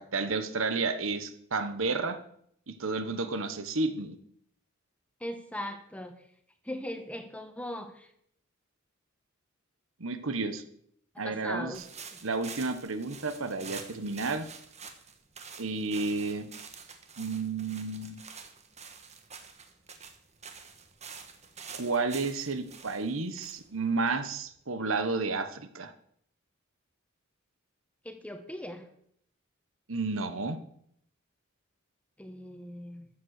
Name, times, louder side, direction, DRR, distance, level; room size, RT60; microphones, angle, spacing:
voice 1, 0.0-2.2 2.7-4.2 10.0-10.6 11.2-11.9 12.2-14.5 15.6-16.5 17.2-18.2 21.7-25.9 29.9-30.6, right 3 dB, 70° right, 10 dB, 1.2 m, -31 dB
voice 2, 5.2-6.1 6.7-8.1 11.2-11.8 28.0-28.8 32.2-33.1, left 1 dB, 5° left, 7 dB, 1.4 m, -39 dB
sound 1, 11.7-24.5, right 6 dB, 35° right, 1.6 m, -47 dB
14.0 x 7.9 x 6.6 m, 0.68 s
head